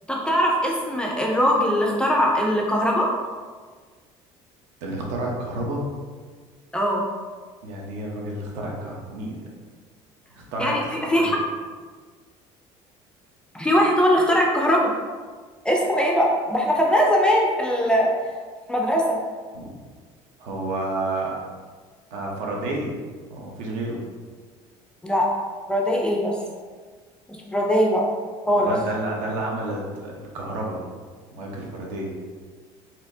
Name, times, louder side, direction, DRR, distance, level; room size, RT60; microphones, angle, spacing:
voice 1, 0.1-3.1 6.7-7.0 10.6-11.4 13.5-14.9 15.6-18.1 18.7-19.2 25.0-25.3 25.7-26.4 27.5-28.0 28.5-28.7, equal, 5° left, -2 dB, 0.3 m, -21 dB
voice 2, 4.8-5.8 7.6-9.5 10.4-10.7 11.1-11.4 19.5-19.7 20.4-21.4 22.1-23.0 23.3-24.0 28.5-30.8 31.3-32.1, right 2 dB, 75° right, -2 dB, 0.9 m, -30 dB
4.2 x 2.7 x 2.7 m, 1.5 s
cardioid pair, 170°, 13 cm